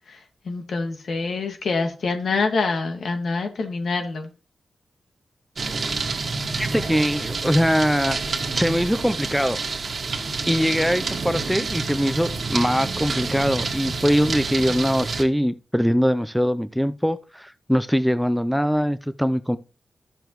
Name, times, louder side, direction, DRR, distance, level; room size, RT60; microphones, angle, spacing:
voice 1, 0.1-4.3, left 4 dB, 75° left, 1.9 m, -26 dB
sound 1, 5.6-15.2, right 4 dB, 60° right, 1.8 m, -28 dB
voice 2, 6.6-8.2 8.5-9.6 10.5-19.6, equal, ahead, 0.5 m, -22 dB
12.5 x 6.9 x 3.1 m
cardioid pair, 70°, 0 cm